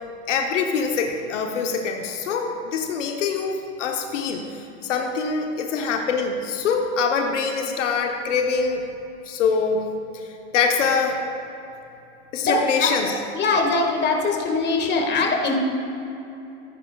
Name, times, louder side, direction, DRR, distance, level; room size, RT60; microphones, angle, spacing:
voice 1, 0.3-8.8 9.3-9.9 10.1-10.3 10.5-11.2 12.3-13.1, left 5 dB, 85° left, 3 dB, 1.0 m, -24 dB
voice 2, 12.4-12.9 13.3-15.5, left 3 dB, 30° left, 1 dB, 1.7 m, -22 dB
14.5 x 9.9 x 2.3 m, 2.9 s
hypercardioid pair, 95°, 36 cm